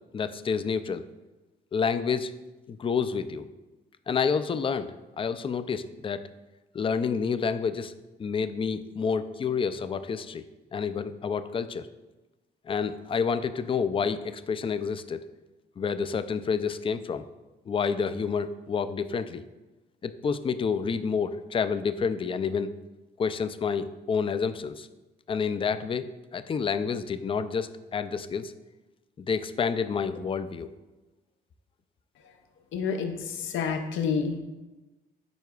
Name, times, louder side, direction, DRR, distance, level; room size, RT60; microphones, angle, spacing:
voice 1, 0.1-1.0 1.7-2.3 2.7-3.5 4.1-6.2 6.7-7.9 8.2-10.4 10.7-11.9 12.7-15.2 15.8-17.2 17.7-19.4 20.0-22.7 23.2-24.9 25.3-28.5 29.3-30.7, left 6 dB, 25° left, 12 dB, 0.3 m, -29 dB
voice 2, 32.7-34.4, left 6 dB, 75° left, 5 dB, 0.7 m, -29 dB
9.2 x 4.7 x 2.3 m, 1.1 s
cardioid pair, 90°, 20 cm